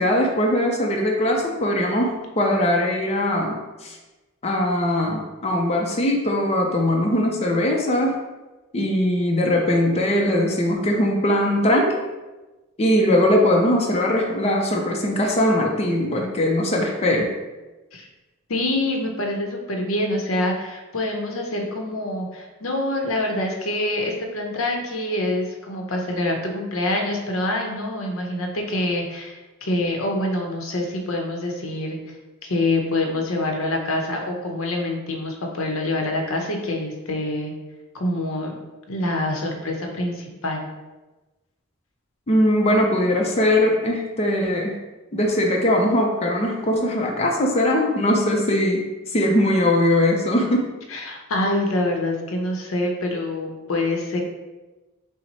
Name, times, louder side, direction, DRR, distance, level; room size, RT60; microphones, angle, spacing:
voice 1, 0.0-4.0 4.4-8.2 8.7-11.9 12.8-17.3 42.3-44.8 45.1-50.7, left 1 dB, 30° left, 0 dB, 0.6 m, -20 dB
voice 2, 18.5-32.2 32.5-37.5 37.9-38.5 38.9-40.7 50.9-54.2, left 1 dB, 80° left, 2 dB, 0.8 m, -26 dB
5.8 x 2.1 x 4.1 m, 1.1 s
head